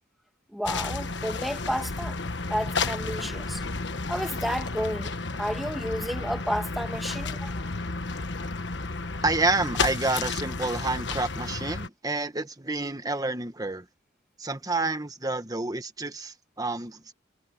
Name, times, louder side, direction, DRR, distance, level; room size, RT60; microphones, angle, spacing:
voice 1, 0.5-2.2 2.5-3.6 4.1-5.1 5.4-7.5, equal, ahead, 1.6 m, -31 dB
sound 1, 0.6-11.9, left 3 dB, 65° left, 1.4 m, -32 dB
voice 2, 9.2-13.8 14.4-17.1, right 2 dB, 20° right, 1.5 m, -29 dB
head